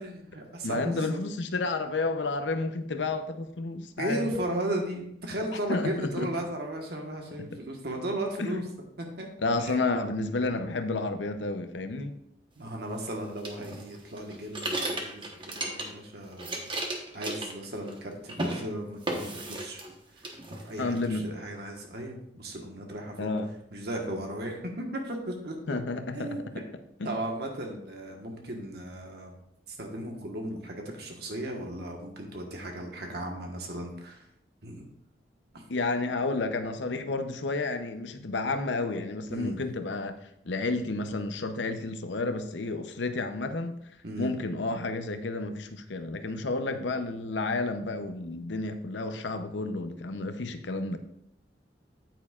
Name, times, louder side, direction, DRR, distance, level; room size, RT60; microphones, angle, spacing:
voice 1, 0.0-1.2 4.0-8.6 9.0-9.3 9.6-9.9 12.6-16.7 17.1-19.8 20.2-23.3 23.7-25.8 26.1-26.4 27.0-29.3 29.7-34.2 34.6-34.8 35.5-35.6 39.3-39.6 44.0-44.3, right 1 dB, 60° right, 1.4 m, -36 dB
voice 2, 0.6-4.3 5.5-6.3 7.4-7.6 8.4-8.7 9.4-12.2 20.8-21.3 23.2-23.5 25.7-26.6 27.0-27.1 35.7-40.1 40.4-43.8 44.2-51.0, left 3 dB, 80° left, 0.7 m, -31 dB
sound 1, 13.4-16.1 16.3-18.0 18.3-18.6 19.1-19.9 20.2-21.0, right 1 dB, 30° right, 1.1 m, -34 dB
9.2 x 8.7 x 2.4 m
head